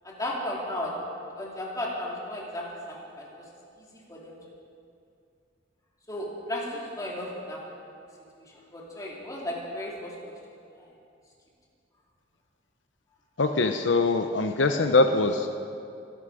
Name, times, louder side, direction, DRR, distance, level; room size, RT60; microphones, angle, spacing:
voice 1, 0.0-0.9 1.3-3.2 4.1-4.4 6.1-7.6 8.7-10.1 10.8-10.9, left 1 dB, 20° left, -4 dB, 3.3 m, -34 dB
voice 2, 13.4-15.5, left 3 dB, 80° left, 6 dB, 0.8 m, -23 dB
23.5 x 11.5 x 5.0 m, 2.4 s
head